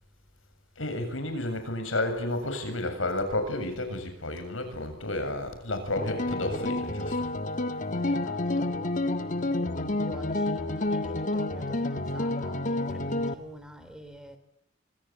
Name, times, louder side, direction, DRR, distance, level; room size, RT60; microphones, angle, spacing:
voice 1, 0.8-7.3, left 1 dB, 80° left, 7.5 m, -31 dB
sound 1, 6.0-13.3, left 2 dB, 40° left, 1.7 m, -29 dB
voice 2, 7.9-8.9 9.2-14.4, equal, 5° right, 3.3 m, -47 dB
26.5 x 25.0 x 8.8 m
head